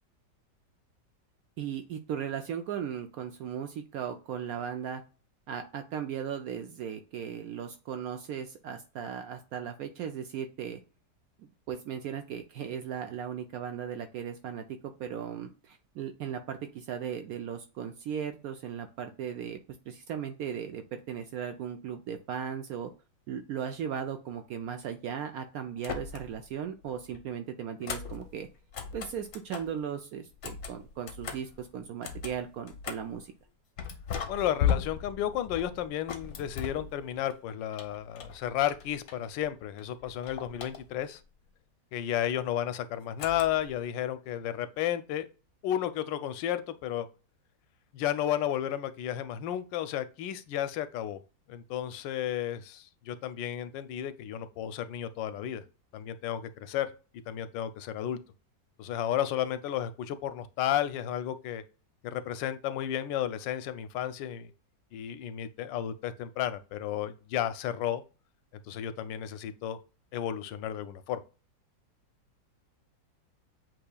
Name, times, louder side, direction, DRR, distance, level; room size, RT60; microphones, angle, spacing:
voice 1, 1.6-5.0 5.5-10.8 11.4-19.6 19.9-22.9 23.3-28.5 28.9-33.3, right 8 dB, 70° right, 0.8 m, -37 dB
sound 1, 25.8-26.5 26.8-29.8 30.3-33.2 33.8-37.3 37.7-39.5 39.8-41.2 43.2-43.8, left 8 dB, 60° left, 0.9 m, -37 dB
voice 2, 34.3-41.2 41.9-45.3 45.6-47.1 47.9-51.2 51.5-55.6 55.9-56.9 57.3-58.2 58.8-61.6 62.0-64.5 64.9-68.0 68.7-69.8 70.1-71.2, left 11 dB, 90° left, 1.3 m, -32 dB
7.8 x 3.0 x 2.2 m
omnidirectional pair, 1.9 m